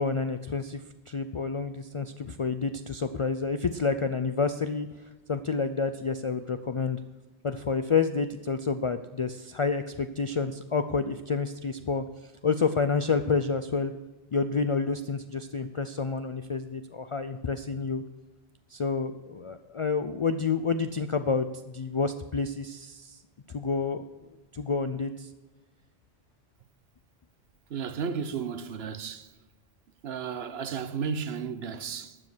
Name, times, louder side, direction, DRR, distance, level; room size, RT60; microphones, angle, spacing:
voice 1, 0.0-4.9 5.3-7.0 7.4-13.9 14.3-18.0 18.7-23.2 23.5-24.0 24.5-25.3, left 4 dB, 55° left, 0.3 m, -29 dB
voice 2, 27.7-29.3 30.0-32.2, right 6 dB, 70° right, 1.0 m, -33 dB
12.0 x 7.5 x 6.1 m
omnidirectional pair, 1.1 m